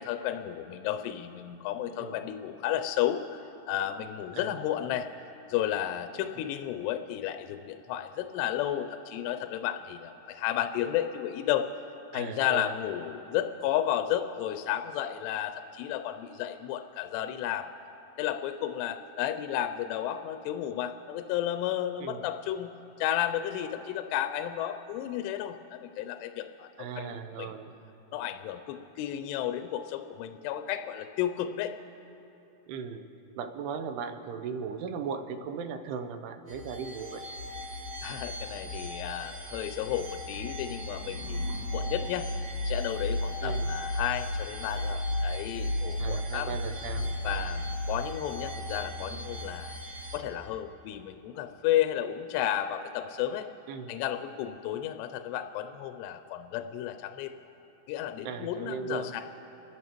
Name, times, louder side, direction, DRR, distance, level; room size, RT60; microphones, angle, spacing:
voice 1, 0.0-5.1 5.5-11.7 12.1-17.7 18.2-27.5 28.1-31.7 38.0-46.6 47.2-49.8 50.1-53.5 53.9-57.3 57.9-59.2, left 11 dB, 85° left, 7 dB, 2.6 m, -32 dB
voice 2, 12.1-12.7 22.0-22.3 26.8-27.7 32.7-33.1 33.4-37.2 43.4-43.6 46.0-47.2 53.7-54.0 58.2-59.1, right 6 dB, 80° right, 8 dB, 2.6 m, -37 dB
sound 1, 36.5-50.2, left 1 dB, 45° right, 1.9 m, -34 dB
sound 2, 40.3-43.3, left 1 dB, 10° right, 1.4 m, -50 dB
29.5 x 13.5 x 3.0 m, 3.0 s
omnidirectional pair, 4.8 m